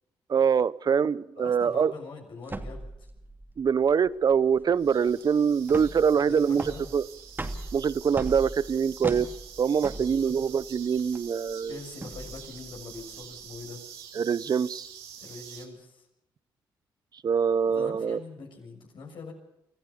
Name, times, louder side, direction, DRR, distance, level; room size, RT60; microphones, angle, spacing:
voice 1, 0.3-1.9 3.6-7.1 7.7-9.3 9.6-11.8 14.1-14.9 17.2-18.2, right 6 dB, 50° right, 0.7 m, -24 dB
voice 2, 1.4-2.9 6.1-6.9 9.8-10.3 11.7-13.8 15.2-16.1 17.7-19.3, left 4 dB, 65° left, 6.5 m, -43 dB
sound 1, 2.4-13.7, right 2 dB, 25° right, 2.4 m, -40 dB
sound 2, 4.8-15.7, right 8 dB, 90° right, 2.5 m, -47 dB
25.0 x 14.5 x 7.1 m
supercardioid pair, 60°, 9 cm